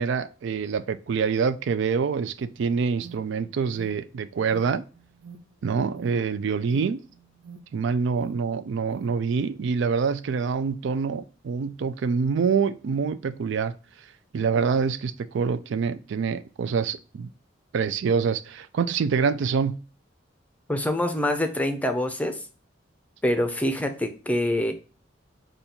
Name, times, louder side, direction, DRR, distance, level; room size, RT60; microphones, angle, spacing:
voice 1, 0.0-4.8 5.6-7.0 7.7-13.7 14.3-17.3 17.7-19.8, right 5 dB, 65° right, 0.3 m, -26 dB
Alarm, 2.4-9.1, right 5 dB, 85° right, 0.8 m, -48 dB
voice 2, 20.7-22.4 23.2-24.7, left 1 dB, 10° left, 0.5 m, -25 dB
5.2 x 2.3 x 4.3 m
head